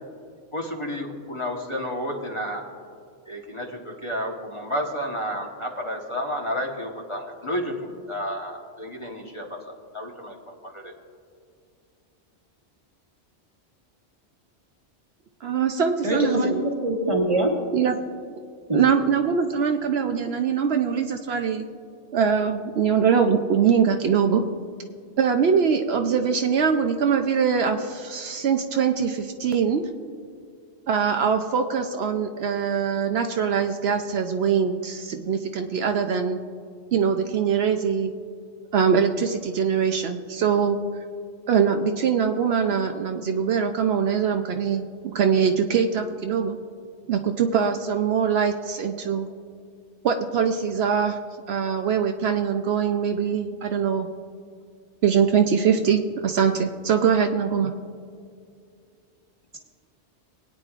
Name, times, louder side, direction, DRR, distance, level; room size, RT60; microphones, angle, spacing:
voice 1, 0.5-2.7 3.3-10.9, equal, 25° left, 0 dB, 1.2 m, -31 dB
voice 2, 15.4-16.6 17.7-18.0 18.7-21.7 22.1-24.4 25.2-29.9 30.9-36.4 36.9-38.1 38.7-40.8 41.5-46.6 47.1-49.3 50.0-51.2 51.5-54.1 55.0-57.7, right 7 dB, 70° right, 5 dB, 0.8 m, -22 dB
voice 3, 16.0-17.5 18.7-18.8, right 1 dB, 30° right, 0 dB, 1.3 m, -23 dB
21.0 x 9.3 x 2.4 m, 2.3 s
omnidirectional pair, 1.2 m